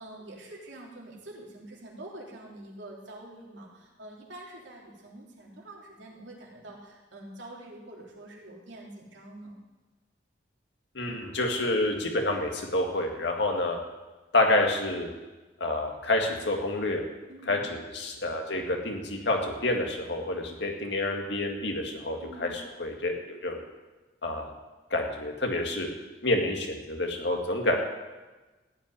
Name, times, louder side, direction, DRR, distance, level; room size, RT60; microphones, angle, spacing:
voice 1, 0.0-9.5 17.3-17.6 22.2-22.6, right 1 dB, 85° right, -2 dB, 3.4 m, -46 dB
voice 2, 10.9-13.8 14.3-15.1 15.6-17.0 17.5-23.7 24.2-24.5 24.9-25.9 26.2-27.8, left 2 dB, 75° left, 2 dB, 2.2 m, -28 dB
15.0 x 6.1 x 10.0 m, 1.2 s
head